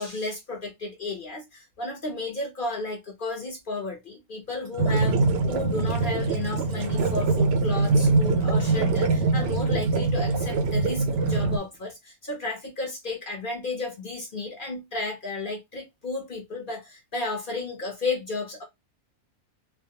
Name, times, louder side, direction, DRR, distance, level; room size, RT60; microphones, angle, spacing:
voice 1, 0.0-18.6, left 3 dB, 50° left, 0.7 m, -33 dB
sound 1, 4.7-11.5, right 6 dB, 65° right, 0.6 m, -33 dB
sound 2, 4.8-11.6, right 3 dB, 90° right, 1.1 m, -24 dB
2.5 x 2.2 x 2.7 m
omnidirectional pair, 1.5 m